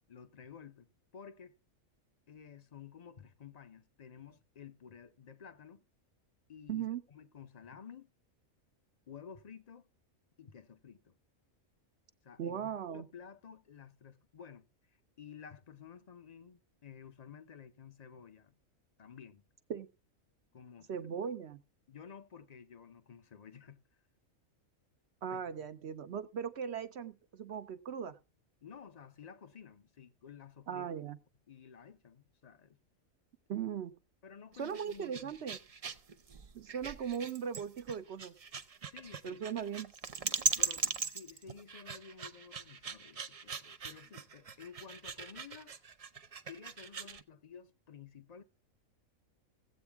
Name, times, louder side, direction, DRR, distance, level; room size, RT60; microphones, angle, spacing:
voice 1, 0.1-1.5 2.3-5.8 6.5-8.1 9.1-9.9 10.4-11.2 12.2-14.7 15.2-18.6 19.0-19.4 20.5-21.2 21.9-23.8 25.3-25.7 28.6-30.9 31.5-32.8 34.2-35.3 38.9-39.4 40.6-45.7 46.4-48.4, left 7 dB, 40° left, 0.7 m, -53 dB
voice 2, 6.7-7.0 12.4-13.1 19.7-19.9 20.9-21.6 25.2-28.2 30.7-31.2 33.5-33.9 34.6-35.6 36.5-38.3 39.2-39.9, right 8 dB, 60° right, 0.9 m, -38 dB
sound 1, 34.5-47.2, right 4 dB, 45° right, 0.5 m, -39 dB
17.0 x 8.0 x 3.4 m
omnidirectional pair, 1.4 m